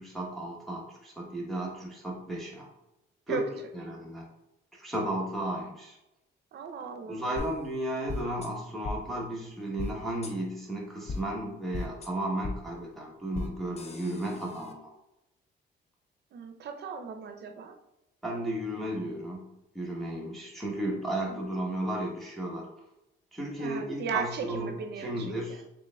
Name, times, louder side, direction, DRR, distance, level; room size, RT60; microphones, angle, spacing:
voice 1, 0.0-2.7 3.3-3.5 3.7-4.2 4.8-6.0 7.1-14.9 18.2-19.5 19.7-22.7 23.3-24.7 25.0-25.6, right 1 dB, ahead, -4 dB, 1.0 m, -34 dB
voice 2, 6.5-7.2 16.3-17.8 21.2-21.6 23.6-25.6, right 6 dB, 60° right, 7 dB, 0.6 m, -37 dB
sound 1, 7.4-7.5 8.1-8.5 8.8-9.0 9.8-9.9 10.2-10.3 11.1-11.2 11.7-12.1 12.4-12.5 13.3-13.5 13.8-14.7, left 3 dB, 30° left, 0.5 m, -36 dB
3.8 x 3.6 x 2.2 m, 0.90 s
cardioid pair, 90°, 20 cm